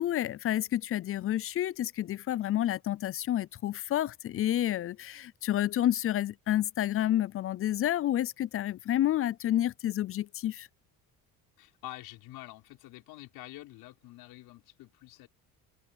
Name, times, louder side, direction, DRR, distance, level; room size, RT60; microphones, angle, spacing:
voice 1, 0.0-10.7, left 12 dB, 40° left, 0.4 m, -29 dB
voice 2, 11.6-15.3, left 17 dB, 80° left, 5.0 m, -47 dB
cardioid pair, 115°, 36 cm